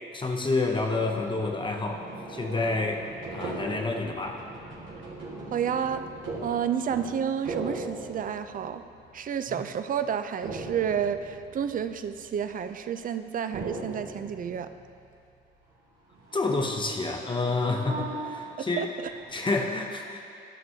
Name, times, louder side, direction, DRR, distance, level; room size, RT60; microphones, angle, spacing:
voice 1, 0.1-3.0 3.3-4.4 16.3-18.8 19.3-20.2, left 3 dB, 25° left, 3 dB, 0.8 m, -29 dB
sound 1, 0.9-13.0 13.5-15.4 15.7-15.8 16.1-19.5, right 2 dB, 80° right, 1.7 m, -40 dB
voice 2, 5.5-6.0 6.4-8.8 9.1-14.7 18.6-19.1, right 8 dB, 45° right, 10 dB, 0.4 m, -30 dB
13.0 x 6.0 x 2.7 m, 2.5 s
cardioid pair, 90°, 20 cm